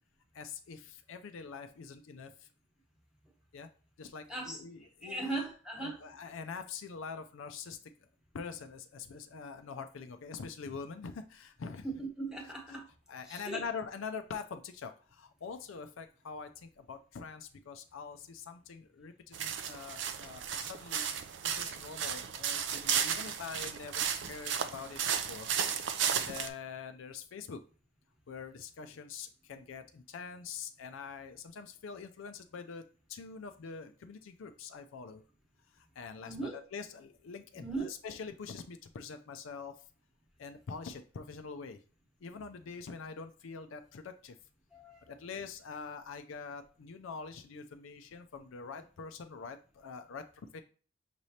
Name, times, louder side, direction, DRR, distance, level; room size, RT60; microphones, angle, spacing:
voice 1, 0.3-2.5 3.5-3.7 4.0-5.4 5.8-8.1 8.3-11.9 12.4-12.8 13.1-21.1 21.4-27.6 28.3-35.2 35.7-39.9 40.4-41.8 42.2-44.4 45.1-50.6, left 5 dB, 70° left, 0.4 m, -45 dB
voice 2, 5.0-6.0 11.8-12.8 13.3-13.6 36.2-36.6 37.5-37.9 44.7-45.0, right 2 dB, 5° right, 1.1 m, -38 dB
sound 1, 19.3-26.5, right 8 dB, 60° right, 0.4 m, -34 dB
5.9 x 3.2 x 2.7 m
head